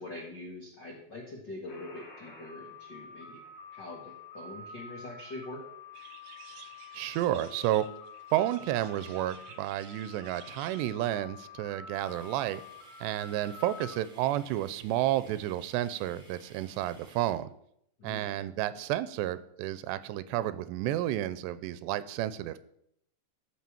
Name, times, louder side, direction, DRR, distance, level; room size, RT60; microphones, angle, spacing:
voice 1, 0.0-3.4 3.7-5.7 18.0-18.3, left 2 dB, 70° left, -1 dB, 1.0 m, -43 dB
sound 1, 1.7-14.0, left 5 dB, 45° left, 3.5 m, -48 dB
sound 2, 5.9-10.9, right 8 dB, 65° right, 2.3 m, -53 dB
voice 2, 6.9-7.9 8.3-12.6 13.0-17.5 18.0-22.6, right 13 dB, 90° right, 15 dB, 2.8 m, -31 dB
sound 3, 11.9-17.3, right 1 dB, 20° right, 1.5 m, -57 dB
13.5 x 6.0 x 7.2 m, 0.72 s
omnidirectional pair, 4.8 m